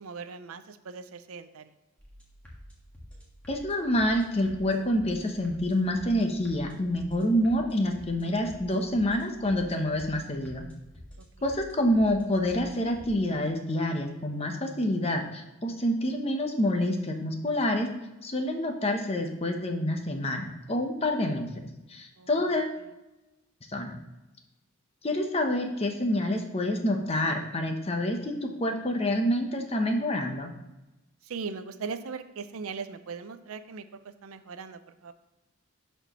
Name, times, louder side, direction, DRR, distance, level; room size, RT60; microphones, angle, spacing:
voice 1, 0.0-1.7 22.2-22.5 31.3-33.8 34.2-35.1, right 5 dB, 80° right, 11 dB, 0.5 m, -39 dB
sound 1, 2.0-13.1, equal, 5° left, 1.5 m, -49 dB
voice 2, 3.5-10.7 11.4-17.9 18.2-22.8 23.7-24.0 25.0-30.5, left 1 dB, 30° left, 4 dB, 0.8 m, -27 dB
12.0 x 4.4 x 3.0 m, 0.98 s
head